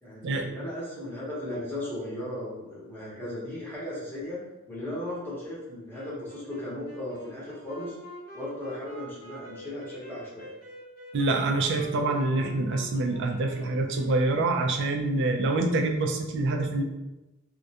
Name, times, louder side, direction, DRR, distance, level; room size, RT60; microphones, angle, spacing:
voice 1, 0.0-4.4 4.7-8.0 8.3-10.5, left 1 dB, 10° left, -8 dB, 0.8 m, -36 dB
Wind instrument woodwind instrument, 5.9-15.4, right 1 dB, 40° left, 0.8 m, -46 dB
voice 2, 11.1-16.8, right 2 dB, 55° right, 3 dB, 0.3 m, -26 dB
2.3 x 2.1 x 2.7 m, 1.0 s
head